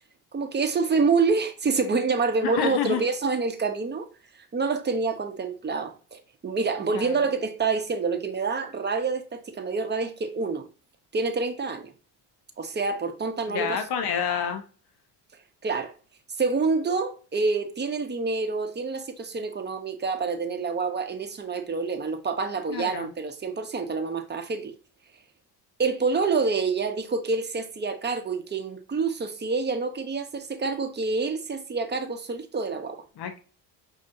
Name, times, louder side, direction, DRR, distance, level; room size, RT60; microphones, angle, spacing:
voice 1, 0.3-4.1 4.4-10.6 11.1-11.9 12.6-13.8 15.6-15.9 16.4-24.7 25.8-33.0, right 4 dB, 20° right, 0.8 m, -27 dB
voice 2, 2.4-3.0 6.9-7.2 13.5-14.6 22.7-23.1 33.2-33.4, left 7 dB, 55° left, 0.9 m, -28 dB
5.2 x 2.8 x 2.6 m
supercardioid pair, 70°, 48 cm